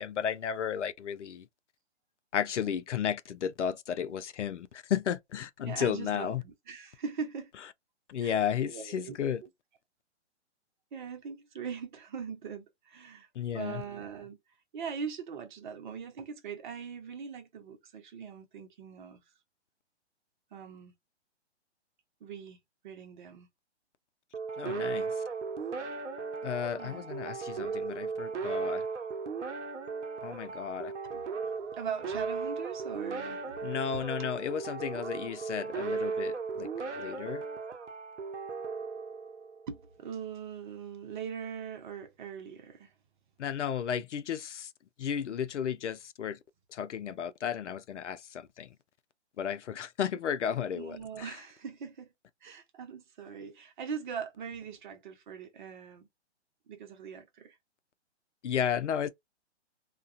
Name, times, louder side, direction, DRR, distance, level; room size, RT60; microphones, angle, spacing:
voice 1, 0.0-1.5 2.3-6.4 8.1-9.4 13.4-13.8 24.6-25.1 26.4-28.9 30.2-30.9 33.6-36.7 36.9-37.4 43.4-44.7 45.0-46.4 46.7-48.7 49.4-51.3 58.4-59.1, left 8 dB, 80° left, 0.6 m, -33 dB
voice 2, 5.6-7.5 8.2-9.5 10.9-14.4 14.7-19.2 20.5-20.9 22.2-22.6 22.8-23.5 25.1-25.4 26.8-27.1 27.6-27.8 31.1-33.6 33.9-34.3 39.7-42.9 50.7-52.1 52.4-56.1 56.7-57.5, right 6 dB, 45° right, 0.8 m, -41 dB
sound 1, 24.3-39.7, right 5 dB, 85° right, 0.7 m, -36 dB
2.3 x 2.2 x 2.5 m
hypercardioid pair, 140°, 35 cm